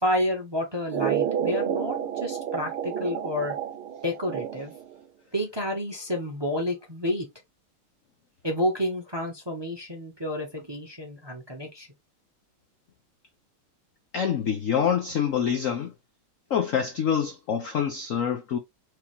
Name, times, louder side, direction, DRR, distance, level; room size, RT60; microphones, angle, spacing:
voice 1, 0.0-3.5 4.0-4.7 5.3-7.3 8.4-11.9, left 1 dB, 20° right, 0.8 m, -30 dB
sound 1, 0.9-4.9, right 9 dB, 85° right, 1.9 m, -30 dB
voice 2, 14.1-15.9 16.5-18.6, left 8 dB, 75° left, 0.7 m, -26 dB
4.9 x 2.9 x 3.3 m
omnidirectional pair, 2.3 m